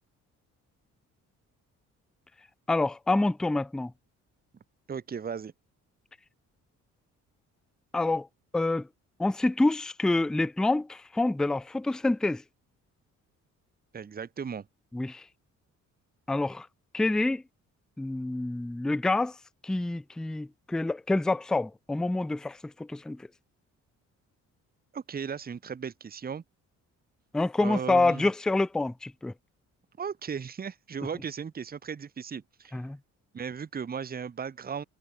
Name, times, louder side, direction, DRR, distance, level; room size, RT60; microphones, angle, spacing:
voice 1, 2.7-3.9 7.9-8.3 8.5-8.9 9.2-12.4 14.9-15.2 16.3-16.7 16.9-17.4 18.0-19.4 19.6-23.3 27.3-29.3 32.7-33.0, left 2 dB, ahead, 0.3 m, -27 dB
voice 2, 4.9-5.5 13.9-14.7 24.9-26.4 27.6-28.3 30.0-32.8 33.3-34.8, right 6 dB, 30° right, 1.0 m, -36 dB
cardioid pair, 90°, 30 cm